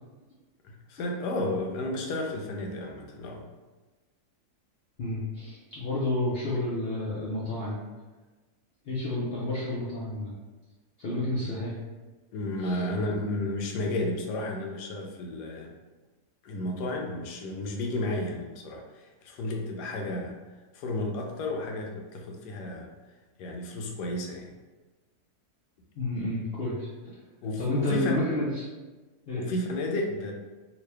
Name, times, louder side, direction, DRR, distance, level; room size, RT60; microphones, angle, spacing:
voice 1, 0.6-3.4 12.3-15.7 16.4-20.4 20.7-22.9 23.4-24.5 27.4-28.2 29.4-30.3, left 1 dB, 85° left, 2 dB, 1.2 m, -32 dB
voice 2, 5.0-7.8 8.9-10.3 11.0-11.7 12.6-12.8 26.0-26.9 27.6-28.6 29.3-29.4, left 1 dB, 60° left, -8 dB, 0.6 m, -30 dB
3.0 x 2.6 x 3.2 m, 1.2 s
omnidirectional pair, 1.7 m